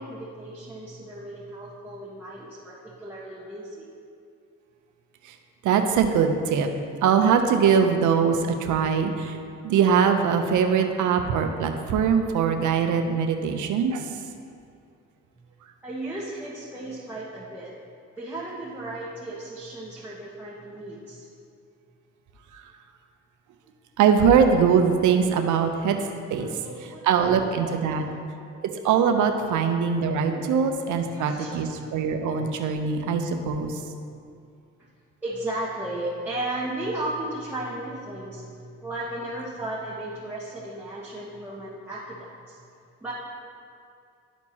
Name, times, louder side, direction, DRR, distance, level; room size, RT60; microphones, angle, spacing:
voice 1, 0.0-3.9 15.8-17.7 18.2-21.3 25.3-25.5 26.4-27.6 27.9-28.1 29.4-29.6 30.2-30.5 30.9-31.9 35.2-42.6 43.0-43.1, right 1 dB, 5° right, -9 dB, 1.3 m, -35 dB
voice 2, 5.6-6.7 7.0-9.4 9.6-14.2 22.5-22.6 24.0-26.0 26.3-26.5 27.0-28.0 28.8-33.8, right 6 dB, 80° right, 6 dB, 0.7 m, -22 dB
12.0 x 4.5 x 2.9 m, 2.4 s
cardioid pair, 90°, 30 cm